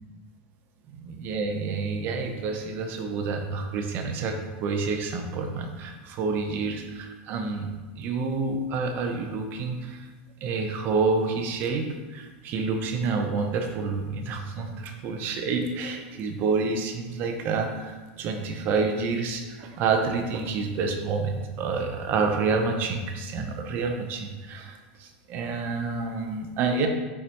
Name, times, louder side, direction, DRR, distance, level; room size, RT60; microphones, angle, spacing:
voice 1, 0.9-7.7 8.0-10.1 10.4-26.9, right 4 dB, 45° right, 4 dB, 0.8 m, -28 dB
6.7 x 4.8 x 3.0 m, 1.2 s
supercardioid pair, 140°, 5 cm